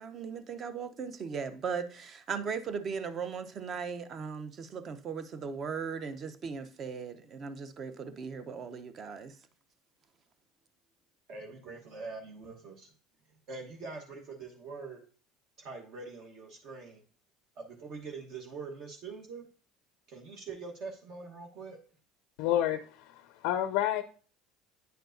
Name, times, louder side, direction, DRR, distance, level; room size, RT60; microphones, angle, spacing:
voice 1, 0.0-9.4, right 6 dB, 40° right, 0.7 m, -38 dB
voice 2, 11.3-12.9 13.5-15.0 15.6-17.0 17.6-19.5 20.1-21.8, right 4 dB, 60° right, 1.1 m, -44 dB
voice 3, 22.4-24.0, left 12 dB, 80° left, 0.4 m, -29 dB
9.2 x 4.5 x 2.6 m
supercardioid pair, 115°, 0 cm